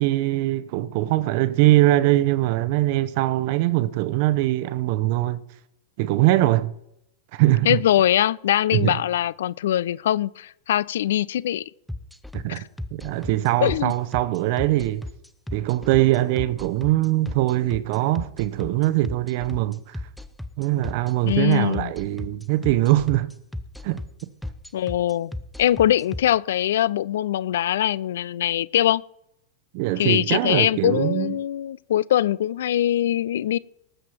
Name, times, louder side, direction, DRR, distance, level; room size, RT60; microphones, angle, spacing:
voice 1, 0.0-5.4 6.0-6.7 7.3-7.8 8.7-9.0 12.3-12.6 12.9-15.0 15.5-20.0 20.6-23.3 23.8-24.3 29.7-31.4, right 16 dB, 45° right, 0.8 m, -22 dB
voice 2, 7.7-11.6 12.5-12.6 13.6-13.9 21.2-21.9 24.7-25.3 25.6-29.0 30.0-33.6, left 12 dB, 60° left, 0.4 m, -22 dB
sound 1, 11.9-26.2, left 1 dB, ahead, 0.7 m, -34 dB
18.5 x 7.6 x 4.5 m
figure-of-eight pair, 90°, 0 cm